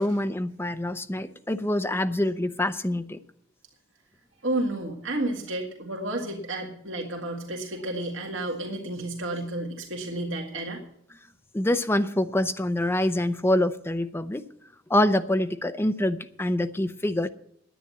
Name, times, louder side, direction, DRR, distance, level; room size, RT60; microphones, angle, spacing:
voice 1, 0.0-3.2 11.5-14.4 14.9-17.3, left 1 dB, 10° left, 0.6 m, -25 dB
voice 2, 4.4-10.8, right 1 dB, 80° right, 2.0 m, -31 dB
10.5 x 9.1 x 8.3 m
head